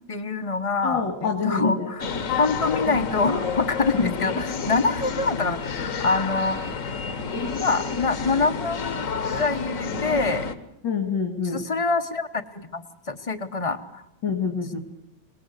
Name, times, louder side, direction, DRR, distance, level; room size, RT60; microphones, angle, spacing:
voice 1, 0.1-2.0 2.4-5.7 6.0-6.6 7.6-10.5 11.5-14.0, left 3 dB, 25° left, 10 dB, 0.8 m, -25 dB
voice 2, 0.8-1.9 3.9-4.1 10.8-11.6 14.2-14.8, left 5 dB, 80° left, 4 dB, 2.8 m, -27 dB
sound 1, 2.0-10.5, left 5 dB, 50° left, 1.4 m, -29 dB
23.5 x 19.5 x 8.1 m, 0.83 s
omnidirectional pair, 1.9 m